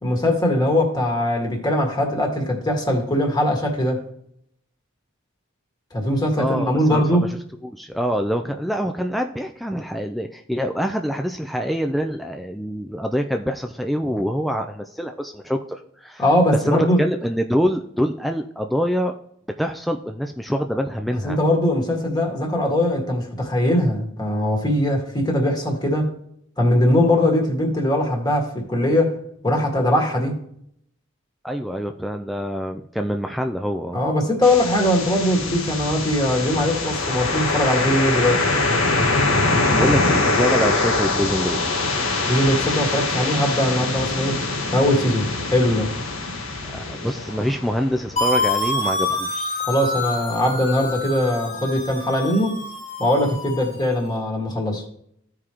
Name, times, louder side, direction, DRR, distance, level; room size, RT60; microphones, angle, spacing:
voice 1, 0.0-4.0 5.9-7.3 16.2-17.0 21.1-26.1 26.6-29.2 29.4-30.4 33.9-38.4 42.3-44.4 44.7-45.9 49.7-52.6 53.0-54.8, left 1 dB, 20° left, 1 dB, 1.8 m, -21 dB
voice 2, 6.4-7.4 7.6-16.2 16.7-19.1 19.6-21.4 31.4-34.0 39.7-41.6 46.7-49.6, equal, ahead, 4 dB, 0.3 m, -25 dB
sound 1, 34.4-48.3, left 3 dB, 90° left, 1.5 m, -23 dB
sound 2, 48.2-53.9, left 2 dB, 40° left, 1.7 m, -27 dB
14.5 x 4.9 x 3.0 m, 0.71 s
head